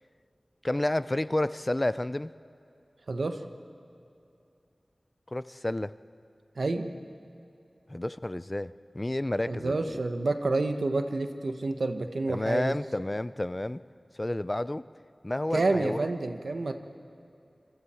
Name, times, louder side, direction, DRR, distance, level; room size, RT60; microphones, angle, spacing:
voice 1, 0.6-2.3 5.3-5.9 7.9-10.0 12.3-13.8 14.2-14.8 15.2-16.1, left 1 dB, 30° left, 16 dB, 0.4 m, -30 dB
voice 2, 3.1-3.4 6.6-6.9 9.5-12.7 15.5-16.8, right 2 dB, 80° right, 7 dB, 1.1 m, -29 dB
26.0 x 23.0 x 4.4 m, 2.7 s
wide cardioid pair, 50°, 0 cm